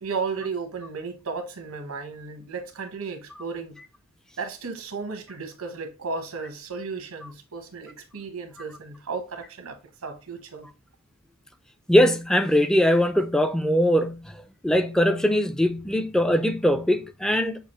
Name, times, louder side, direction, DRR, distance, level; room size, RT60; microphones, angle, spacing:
voice 1, 0.0-3.8 4.4-10.7, right 4 dB, 90° right, 1.1 m, -34 dB
voice 2, 11.9-14.3 14.6-17.6, equal, 5° left, 0.4 m, -21 dB
6.7 x 2.4 x 3.0 m
head